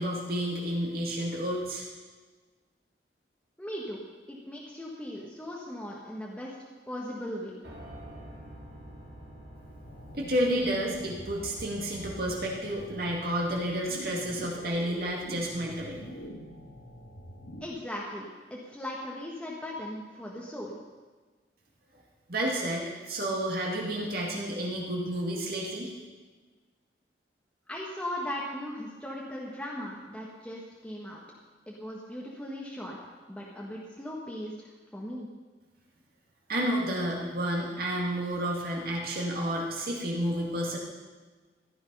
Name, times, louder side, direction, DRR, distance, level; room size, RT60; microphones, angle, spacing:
voice 1, 0.0-1.8 10.1-16.0 22.3-25.9 36.5-40.8, right 1 dB, 55° right, -3 dB, 2.3 m, -30 dB
voice 2, 3.6-7.5 17.6-20.8 27.7-31.2 31.7-33.0 33.3-35.3, left 1 dB, 5° left, -4 dB, 1.5 m, -38 dB
Piano, 7.6-15.6, right 1 dB, 75° right, 3.6 m, -50 dB
sound 1, 9.8-17.7, equal, 75° left, 1.8 m, -45 dB
15.0 x 11.0 x 5.5 m, 1.4 s
head